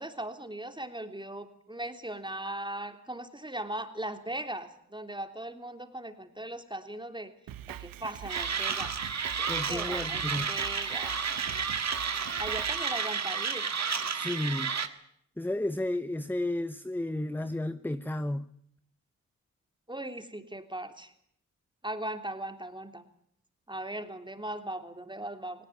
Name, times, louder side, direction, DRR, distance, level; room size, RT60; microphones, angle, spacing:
voice 1, 0.0-7.3 7.7-9.0 9.4-11.2 12.4-13.7 19.9-21.1 21.8-23.0 23.7-25.7, right 1 dB, 15° right, 3.2 m, -39 dB
Drum kit, 7.5-12.8, right 12 dB, 85° right, 1.0 m, -43 dB
Mechanisms, 8.3-14.9, right 6 dB, 50° right, 1.8 m, -31 dB
voice 2, 9.5-10.5 14.1-14.7 15.4-18.5, left 1 dB, 5° left, 0.9 m, -32 dB
18.5 x 18.0 x 9.3 m
supercardioid pair, 45°, 33 cm